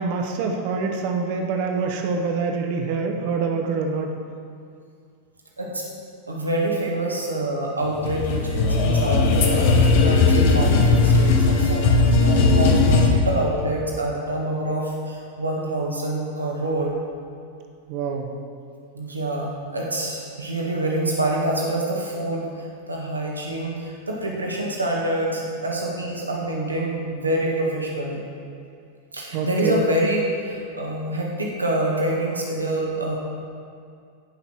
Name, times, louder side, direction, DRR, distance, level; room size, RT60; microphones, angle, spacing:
voice 1, 0.0-4.1 17.9-18.3 29.3-29.8, right 4 dB, 45° right, 3 dB, 1.1 m, -25 dB
voice 2, 6.3-16.9 18.9-28.3 29.1-33.2, right 1 dB, 80° right, -2 dB, 1.7 m, -26 dB
sound 1, 7.9-13.1, left 3 dB, 50° left, 1.2 m, -18 dB
16.5 x 5.8 x 4.6 m, 2.3 s
figure-of-eight pair, 90°, 0 cm